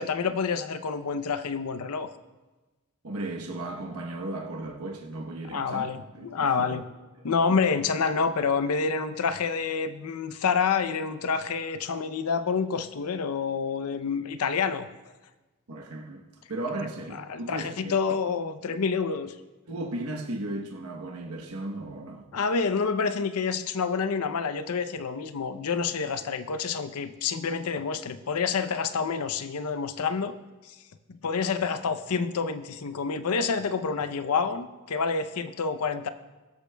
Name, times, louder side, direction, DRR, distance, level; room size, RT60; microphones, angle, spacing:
voice 1, 0.0-2.1 5.5-6.8 7.2-14.9 17.3-19.3 22.3-30.4 30.6-30.8 31.1-36.1, left 5 dB, 80° left, 12 dB, 0.6 m, -28 dB
voice 2, 3.0-6.8 15.7-18.0 19.7-22.3, right 2 dB, 80° right, 1 dB, 1.0 m, -36 dB
22.0 x 8.3 x 2.2 m, 1.2 s
head